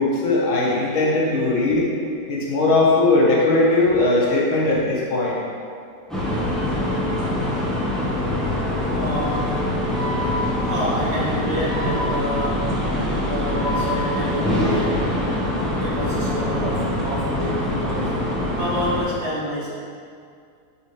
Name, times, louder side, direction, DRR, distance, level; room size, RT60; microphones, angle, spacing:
voice 1, 0.0-1.8 2.3-5.4, left 2 dB, 70° left, -5 dB, 2.1 m, -19 dB
sound 1, 6.1-19.0, left 1 dB, ahead, 0.9 m, -24 dB
voice 2, 8.9-9.5 10.6-15.0 15.8-18.1 18.5-19.7, equal, 35° right, -8 dB, 1.6 m, -28 dB
10.5 x 4.4 x 3.4 m, 2.3 s
omnidirectional pair, 2.4 m